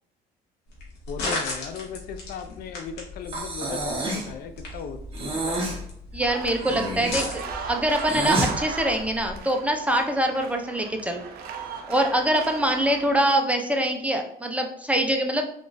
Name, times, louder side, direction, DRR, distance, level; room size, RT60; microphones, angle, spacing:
sound 1, 0.7-9.4, left 2 dB, 85° left, 1.1 m, -37 dB
voice 1, 1.1-5.8, left 7 dB, 65° left, 9 dB, 0.4 m, -37 dB
Breathing, 3.3-4.3 5.1-5.8 6.6-8.5, right 2 dB, 35° right, 0.9 m, -29 dB
voice 2, 6.1-11.2 11.9-15.4, right 1 dB, 10° right, 3 dB, 0.4 m, -24 dB
sound 2, 6.2-13.3, right 5 dB, 65° right, 0.5 m, -37 dB
3.7 x 2.4 x 2.5 m, 0.68 s
cardioid pair, 110°, 17 cm